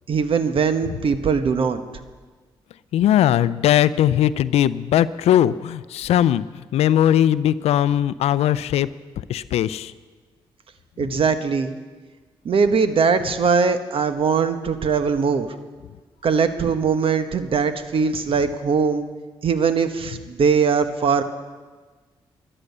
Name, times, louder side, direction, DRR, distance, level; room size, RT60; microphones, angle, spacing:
voice 1, 0.1-1.8 11.0-11.7 12.4-15.5 16.2-19.0 19.4-21.2, right 5 dB, 60° right, 10 dB, 1.1 m, -21 dB
voice 2, 2.9-6.4 6.7-8.9 9.3-9.9, left 11 dB, 80° left, 17 dB, 0.4 m, -19 dB
13.0 x 11.0 x 6.7 m, 1.4 s
supercardioid pair, 60°, 11 cm